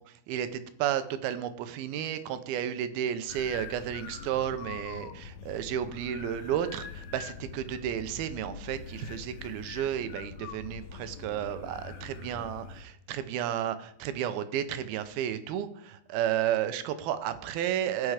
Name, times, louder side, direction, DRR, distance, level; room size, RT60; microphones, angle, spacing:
voice 1, 0.3-18.1, right 10 dB, 90° right, 11 dB, 2.8 m, -32 dB
sound 1, 3.3-12.8, left 7 dB, 85° left, 1.4 m, -44 dB
17.5 x 6.1 x 4.9 m, 0.74 s
omnidirectional pair, 4.2 m